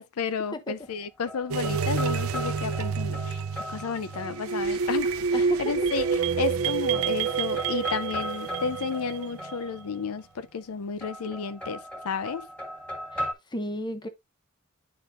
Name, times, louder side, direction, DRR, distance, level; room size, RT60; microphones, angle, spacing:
voice 1, 0.0-3.4 3.7-12.5, left 6 dB, 85° left, 0.5 m, -32 dB
sound 1, 0.8-4.8 6.0-6.6 6.9-10.1 11.0-13.3, equal, 5° left, 1.8 m, -38 dB
sound 2, 1.5-9.6, right 5 dB, 75° right, 0.6 m, -28 dB
voice 2, 5.3-5.7 13.1-13.2 13.5-14.1, equal, 20° left, 0.8 m, -33 dB
9.9 x 4.2 x 2.5 m
head